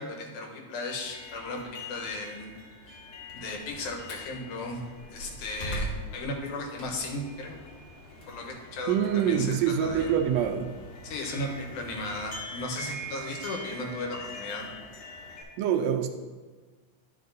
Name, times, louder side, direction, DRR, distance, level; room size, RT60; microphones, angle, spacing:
voice 1, 0.0-2.5 2.9-3.0 3.3-4.8 5.1-7.6 8.3-10.1 11.0-14.7, left 2 dB, 85° left, 1 dB, 2.6 m, -36 dB
sound 1, 0.8-15.4, left 1 dB, 65° left, 2.3 m, -44 dB
Slam, 3.2-4.3 4.9-7.2 7.7-10.0, right 1 dB, 50° left, 1.7 m, -39 dB
voice 2, 8.9-10.7 15.6-16.1, right 8 dB, 80° right, 6 dB, 1.7 m, -25 dB
11.0 x 5.1 x 4.0 m, 1.4 s
omnidirectional pair, 3.3 m